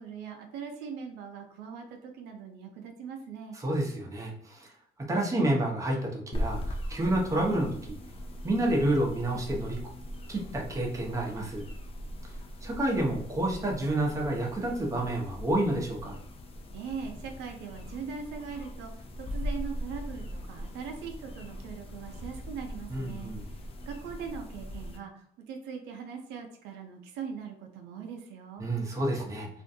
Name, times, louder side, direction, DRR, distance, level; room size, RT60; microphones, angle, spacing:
voice 1, 0.0-3.6 16.7-28.7, right 6 dB, 90° right, 3 dB, 0.5 m, -41 dB
voice 2, 3.6-4.7 5.1-7.9 8.4-9.8 10.3-11.6 12.6-16.2 22.9-23.4 28.6-29.5, right 1 dB, 20° right, -1 dB, 0.7 m, -29 dB
sound 1, 6.3-25.0, equal, 35° left, 0.4 m, -40 dB
2.5 x 2.2 x 2.6 m, 0.66 s
cardioid pair, 110°, 17 cm